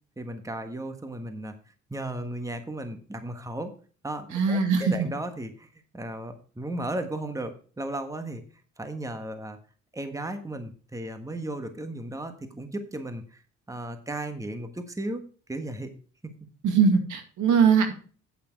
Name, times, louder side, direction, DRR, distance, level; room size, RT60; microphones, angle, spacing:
voice 1, 0.2-1.6 1.9-3.7 4.0-5.7 5.9-8.4 8.8-9.6 9.9-13.4 13.7-15.2 15.5-15.9 16.2-16.3, right 1 dB, 10° right, 8 dB, 1.5 m, -35 dB
voice 2, 4.3-4.9 16.6-17.9, right 6 dB, 80° right, 6 dB, 2.2 m, -21 dB
8.6 x 8.5 x 4.7 m, 0.39 s
cardioid pair, 90°, 30 cm